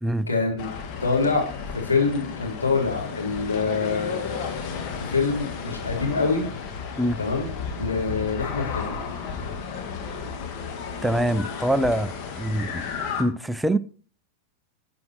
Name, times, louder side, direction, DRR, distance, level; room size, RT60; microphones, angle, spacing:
voice 1, 0.3-0.7 1.0-6.4 7.2-9.0, left 4 dB, 80° left, 4.3 m, -26 dB
sound 1, 0.6-13.2, left 6 dB, 40° left, 2.3 m, -33 dB
voice 2, 11.0-12.9 13.2-13.8, right 1 dB, 5° right, 0.5 m, -24 dB
13.0 x 7.5 x 4.6 m
figure-of-eight pair, 90°, 0 cm